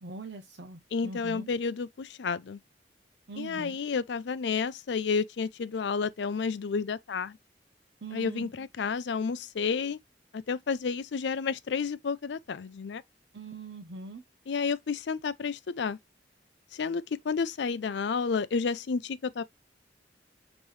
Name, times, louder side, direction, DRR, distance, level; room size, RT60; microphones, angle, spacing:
voice 1, 0.0-1.5 3.3-3.8 8.0-8.5 13.3-14.2, right 3 dB, 65° right, 0.7 m, -42 dB
voice 2, 0.9-2.6 3.4-7.4 8.1-10.0 10.3-13.0 14.5-16.0 16.7-19.4, left 5 dB, 75° left, 0.5 m, -31 dB
5.4 x 3.0 x 3.2 m
head